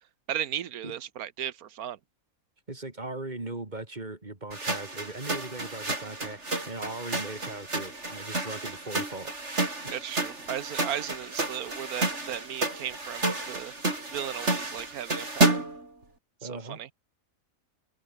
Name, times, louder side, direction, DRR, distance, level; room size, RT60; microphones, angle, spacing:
voice 1, 0.3-2.0 9.9-13.7 14.1-15.6 16.4-16.9, right 10 dB, 85° right, 1.4 m, -36 dB
voice 2, 2.7-9.3 9.8-9.9 16.4-16.8, right 2 dB, 30° right, 2.9 m, -39 dB
sound 1, 4.5-15.9, right 2 dB, 50° right, 4.8 m, -31 dB
omnidirectional pair, 1.5 m